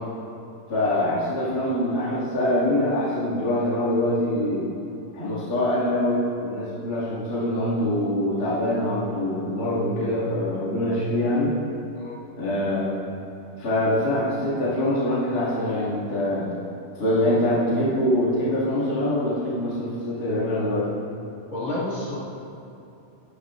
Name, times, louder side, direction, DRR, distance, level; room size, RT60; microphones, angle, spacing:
voice 1, 0.7-4.7 5.1-11.5 12.3-12.9 13.6-16.5 16.9-21.0, left 1 dB, 60° left, -9 dB, 0.9 m, -24 dB
voice 2, 21.5-22.2, left 2 dB, 45° left, -9 dB, 2.2 m, -29 dB
19.5 x 9.3 x 2.5 m, 2.8 s
omnidirectional pair, 5.6 m